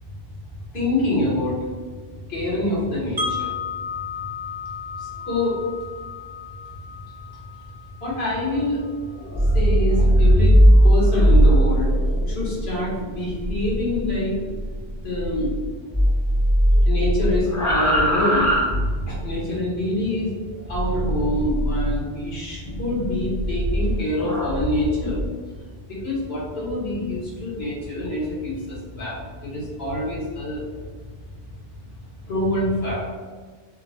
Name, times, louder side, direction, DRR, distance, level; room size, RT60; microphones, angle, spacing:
voice 1, 0.7-1.6 2.3-3.6 5.0-5.6 8.0-8.9 9.5-10.6 10.8-11.9 12.3-14.4 15.0-15.5 16.8-18.5 19.1-20.3 20.7-25.2 25.9-30.6 32.3-33.1, left 1 dB, 60° left, -7 dB, 1.8 m, -25 dB
Wind chime, 3.2-9.2, left 5 dB, 45° right, 0.6 m, -34 dB
sound 1, 9.2-15.7 15.9-19.3 20.7-22.0 22.6-25.2, equal, 20° left, 0.6 m, -19 dB
6.8 x 2.9 x 2.3 m, 1.5 s
omnidirectional pair, 1.2 m